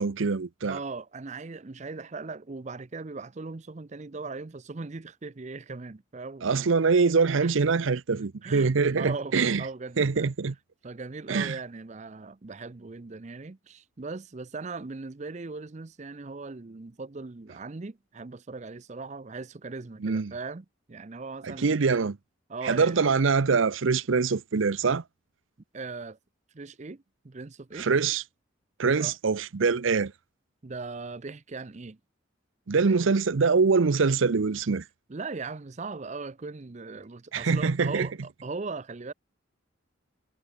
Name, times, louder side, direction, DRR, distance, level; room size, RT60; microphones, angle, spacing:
voice 1, 0.0-0.8 6.4-9.6 10.0-10.5 11.3-11.6 20.0-20.3 21.4-22.2 22.6-25.0 27.8-28.2 28.8-30.1 32.7-34.8 37.3-38.1, right 4 dB, 75° right, 0.6 m, -24 dB
voice 2, 0.7-6.7 7.4-7.5 8.4-8.7 9.0-10.3 10.8-21.8 22.5-23.0 25.7-26.2 26.5-27.9 29.0-29.1 30.6-32.0 32.8-32.9 35.1-39.1, right 3 dB, 35° right, 0.6 m, -39 dB
head